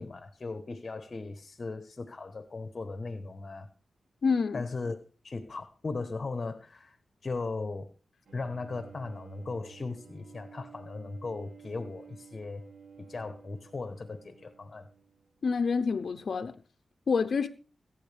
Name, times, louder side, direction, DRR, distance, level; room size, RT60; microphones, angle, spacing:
voice 1, 0.0-3.7 4.5-5.0 5.2-7.9 8.3-12.7 13.0-14.9, left 3 dB, 40° left, 1.2 m, -37 dB
voice 2, 4.2-4.6 15.4-16.5 17.1-17.5, left 5 dB, 60° left, 0.7 m, -27 dB
Bowed string instrument, 8.3-15.5, right 7 dB, 80° right, 2.8 m, -53 dB
21.5 x 9.3 x 3.5 m
wide cardioid pair, 100°, 0 cm